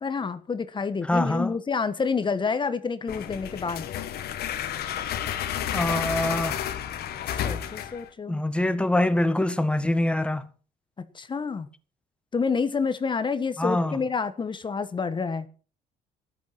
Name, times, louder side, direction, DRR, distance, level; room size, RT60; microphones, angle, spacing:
voice 1, 0.0-3.9 7.4-8.4 11.0-11.7 12.3-15.5, left 5 dB, 30° left, 1.4 m, -28 dB
voice 2, 1.1-1.5 5.7-6.6 8.3-10.5 13.6-14.0, left 1 dB, 5° left, 1.4 m, -24 dB
sound 1, 3.1-8.1, left 10 dB, 70° left, 1.7 m, -31 dB
14.0 x 11.5 x 6.0 m
cardioid pair, 110°, 17 cm